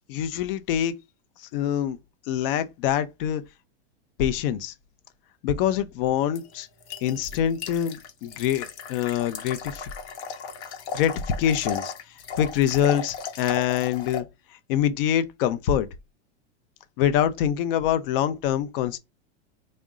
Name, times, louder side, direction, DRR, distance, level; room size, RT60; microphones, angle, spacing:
voice 1, 0.1-0.9 1.4-2.0 2.3-3.4 4.2-4.7 5.4-6.7 7.0-9.9 10.9-11.9 12.3-14.2 14.7-15.9 17.0-19.0, left 10 dB, 55° left, 0.6 m, -25 dB
sound 1, 6.4-14.2, left 6 dB, 80° left, 1.0 m, -36 dB
3.6 x 2.1 x 3.7 m
supercardioid pair, 155°, 33 cm